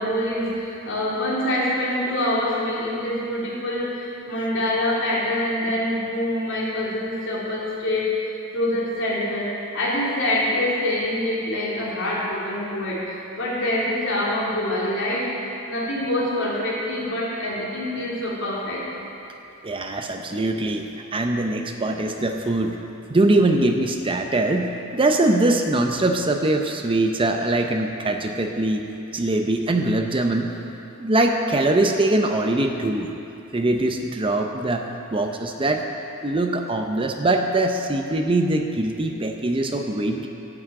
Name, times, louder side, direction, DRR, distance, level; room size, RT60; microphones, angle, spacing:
voice 1, 0.0-15.3 15.7-18.8, left 1 dB, 65° left, -6 dB, 3.3 m, -25 dB
voice 2, 19.6-22.8 23.1-28.8 29.1-30.5 31.0-33.1 33.5-34.8 35.1-35.8 36.2-40.3, right 2 dB, 25° right, 4 dB, 0.6 m, -22 dB
12.5 x 6.1 x 8.7 m, 2.8 s
head